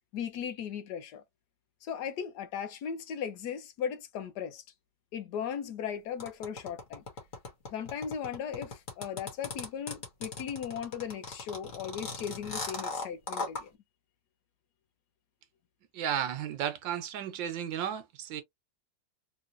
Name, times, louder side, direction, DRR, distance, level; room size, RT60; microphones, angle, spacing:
voice 1, 0.1-1.2 1.8-4.6 5.1-7.0 7.7-13.7, left 8 dB, 70° left, 1.3 m, -37 dB
sound 1, 6.2-13.6, left 3 dB, 45° left, 1.8 m, -38 dB
voice 2, 15.9-18.4, right 9 dB, 80° right, 1.6 m, -33 dB
3.8 x 3.0 x 2.6 m
omnidirectional pair, 2.0 m